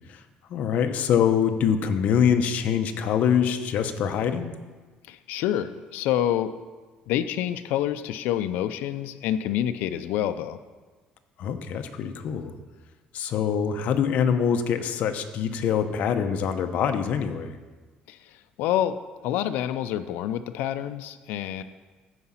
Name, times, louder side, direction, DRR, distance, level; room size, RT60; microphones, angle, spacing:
voice 1, 0.5-4.5 11.4-12.5 13.1-17.5, left 8 dB, 55° left, 7 dB, 0.8 m, -24 dB
voice 2, 5.1-6.6 7.1-10.6 18.1-21.6, left 11 dB, 85° left, 10 dB, 0.5 m, -27 dB
14.5 x 4.9 x 5.6 m, 1.3 s
cardioid pair, 150°, 3 cm